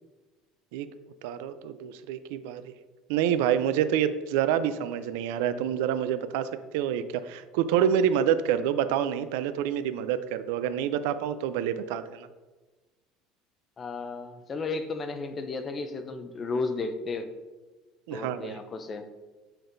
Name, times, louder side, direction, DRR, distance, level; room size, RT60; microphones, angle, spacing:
voice 1, 1.2-2.7 3.1-12.3 18.1-18.6, right 9 dB, 75° right, 12 dB, 0.4 m, -27 dB
voice 2, 13.8-17.3 18.1-19.0, left 3 dB, 20° left, 8 dB, 0.4 m, -33 dB
6.8 x 5.8 x 2.6 m, 1.3 s
cardioid pair, 175°, 0 cm